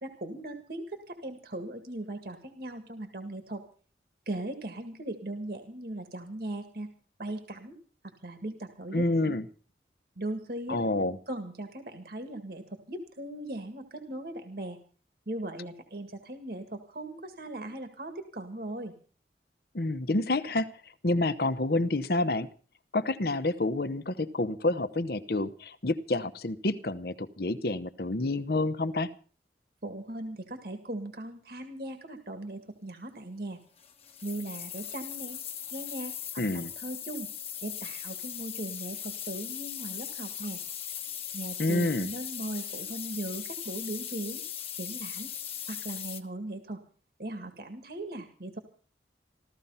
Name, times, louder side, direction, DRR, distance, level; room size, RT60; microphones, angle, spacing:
voice 1, 0.0-3.6 4.3-6.9 7.2-7.8 8.2-9.0 10.2-10.8 11.3-14.8 15.3-18.9 29.8-33.6 34.2-35.4 35.7-37.3 37.6-40.6 41.3-44.4 44.7-45.3 45.7-46.8 47.2-48.6, right 1 dB, 60° right, 7 dB, 1.9 m, -38 dB
voice 2, 8.9-9.4 10.7-11.2 19.7-20.7 21.0-22.5 22.9-29.1 36.4-36.7 41.6-42.1, left 2 dB, 60° left, 12 dB, 1.0 m, -28 dB
sound 1, 33.8-46.2, left 9 dB, 35° left, 1.3 m, -39 dB
15.5 x 13.5 x 5.6 m, 0.42 s
head